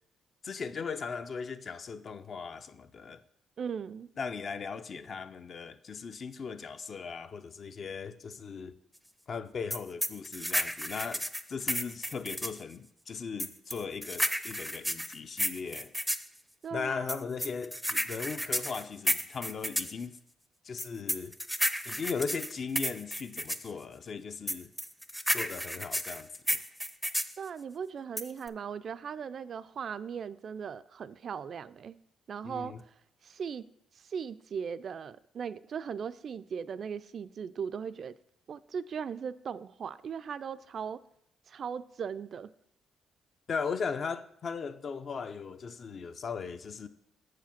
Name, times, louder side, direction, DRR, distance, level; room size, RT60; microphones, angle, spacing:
voice 1, 0.4-3.2 4.2-8.7 9.3-11.2 11.5-15.9 16.7-20.2 20.6-21.3 21.9-24.7 25.3-26.6 32.4-32.8 43.5-46.9, left 5 dB, 50° left, 0.5 m, -38 dB
voice 2, 3.6-4.1 16.6-17.2 27.4-32.0 32.3-32.7 33.2-33.7 34.0-38.2 38.5-41.0 41.5-42.5, right 7 dB, 55° right, 0.3 m, -38 dB
sound 1, 9.7-12.6 13.4-16.3 17.1-19.9 20.8-23.7 24.5-27.4 28.2-28.5, equal, ahead, 0.5 m, -32 dB
6.9 x 4.9 x 5.8 m
cardioid pair, 90°, 0 cm